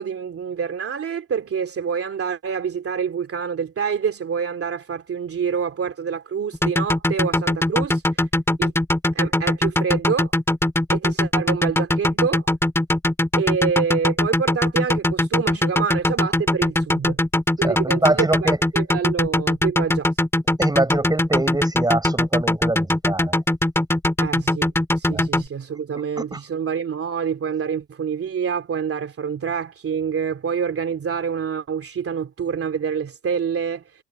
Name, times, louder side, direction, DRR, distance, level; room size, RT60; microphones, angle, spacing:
voice 1, 0.0-8.0 8.6-8.7 9.1-10.3 10.9-12.5 13.4-17.2 17.6-20.1 24.2-24.7 25.0-33.8, right 6 dB, 50° right, 2.8 m, -26 dB
sound 1, 6.5-25.4, left 1 dB, 10° left, 2.5 m, -20 dB
voice 2, 17.6-18.6 20.6-23.4 25.1-25.2 25.9-26.4, right 2 dB, 15° right, 6.0 m, -24 dB
cardioid pair, 90°, 30 cm